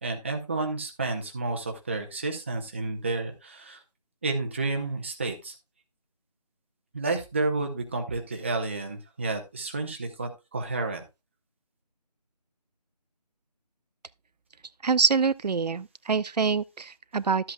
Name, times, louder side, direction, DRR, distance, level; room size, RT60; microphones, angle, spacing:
voice 1, 0.0-3.8 4.2-5.5 6.9-11.0, right 3 dB, 20° right, 0.8 m, -31 dB
voice 2, 14.8-17.5, right 5 dB, 80° right, 0.5 m, -25 dB
12.5 x 7.9 x 2.3 m
figure-of-eight pair, 165°, 21 cm